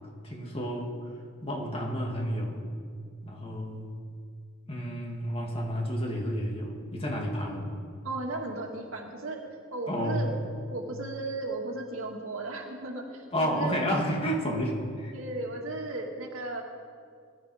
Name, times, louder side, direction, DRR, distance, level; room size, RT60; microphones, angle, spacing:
voice 1, 0.2-0.9 1.4-2.7 3.2-3.9 4.7-7.7 9.9-10.3 13.3-15.1, equal, 30° left, 0 dB, 2.3 m, -31 dB
voice 2, 8.0-9.4 9.7-10.4 10.7-13.8 15.1-16.6, right 2 dB, 85° right, 0 dB, 1.9 m, -35 dB
21.0 x 11.5 x 5.0 m, 2.2 s
head